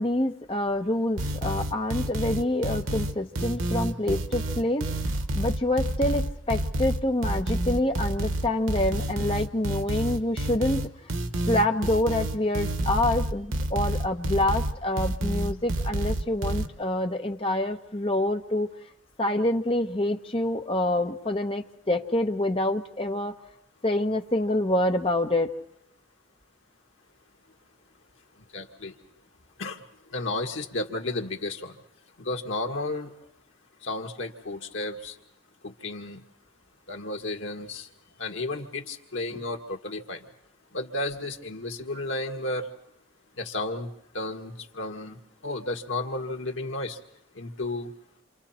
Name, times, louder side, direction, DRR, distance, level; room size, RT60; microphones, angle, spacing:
voice 1, 0.0-4.8 5.3-10.9 11.5-18.7 19.2-23.3 23.8-25.5, left 1 dB, 25° left, 4 dB, 1.1 m, -26 dB
sound 1, 1.2-16.7, right 1 dB, 90° right, 1.2 m, -29 dB
voice 2, 28.5-28.9 29.6-29.8 30.1-31.8 32.2-33.1 33.8-35.2 35.6-36.2 36.9-37.9 38.2-40.2 40.7-42.7 43.4-43.9 44.1-45.2 45.4-47.0 47.4-47.9, left 2 dB, 80° left, 2 dB, 1.9 m, -32 dB
28.0 x 27.0 x 4.4 m, 0.76 s
head